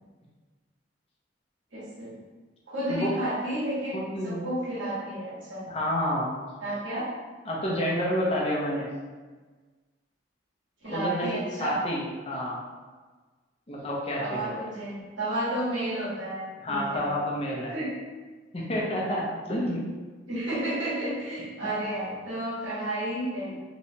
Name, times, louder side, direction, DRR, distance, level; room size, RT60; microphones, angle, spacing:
voice 1, 1.7-2.2 2.7-5.7 6.6-7.1 10.8-11.8 14.1-17.1 17.7-17.9 20.3-23.6, right 1 dB, 75° right, -8 dB, 1.4 m, -32 dB
voice 2, 3.9-4.4 5.7-6.3 7.5-8.9 10.9-12.6 13.7-14.6 16.6-17.7 18.5-19.8, equal, 30° left, -4 dB, 0.7 m, -29 dB
3.2 x 3.0 x 2.8 m, 1.4 s
head